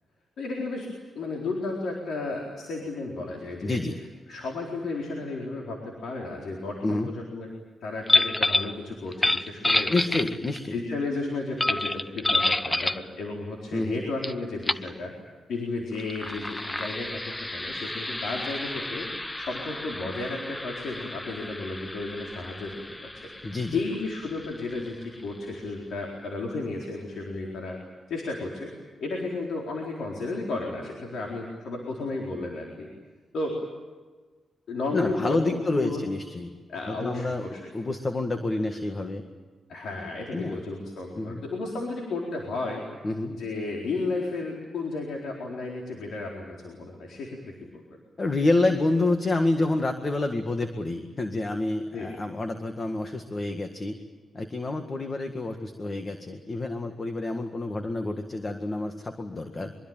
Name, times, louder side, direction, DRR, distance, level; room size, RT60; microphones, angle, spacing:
voice 1, 0.4-0.9 1.1-3.8 4.3-7.5 7.8-9.9 10.7-15.1 15.5-19.1 19.4-23.1 23.4-27.8 28.1-28.7 29.0-32.9 33.3-33.6 34.7-36.0 36.7-37.6 39.7-42.8 43.3-47.7 51.9-52.1, left 3 dB, 80° left, 0 dB, 4.3 m, -33 dB
voice 2, 3.6-4.0 6.8-7.1 9.9-10.8 13.7-14.0 23.4-23.8 34.9-36.5 36.9-37.5 37.7-39.2 40.3-40.6 41.2-41.4 43.0-43.3 48.2-54.0 54.3-59.9, left 2 dB, 30° left, 6 dB, 1.8 m, -28 dB
sound 1, 8.1-8.7 9.1-10.7 11.6-13.1 14.2-14.3 14.6-14.9 15.9-25.2, left 2 dB, 15° left, 0.9 m, -29 dB
24.0 x 24.0 x 9.0 m, 1.4 s
cardioid pair, 110°, 0 cm